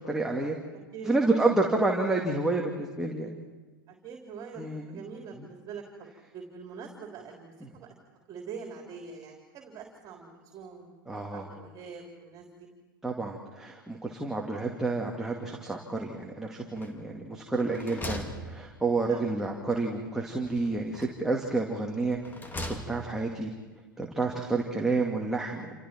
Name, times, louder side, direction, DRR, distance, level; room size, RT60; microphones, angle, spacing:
voice 1, 0.1-0.6 1.0-3.3 4.6-5.0 7.6-7.7 11.1-11.5 13.0-22.2 22.6-23.5 24.0-25.8, right 3 dB, 5° right, -1 dB, 2.3 m, -29 dB
voice 2, 3.9-6.1 6.3-7.9 8.3-10.9 11.3-12.7 19.1-19.2, right 5 dB, 35° right, 1 dB, 3.5 m, -44 dB
sound 1, 16.8-17.3 17.6-19.2 20.4-21.3 22.0-23.3, left 1 dB, 15° left, 2.2 m, -40 dB
28.5 x 28.0 x 4.5 m, 1.3 s
figure-of-eight pair, 95°, 12 cm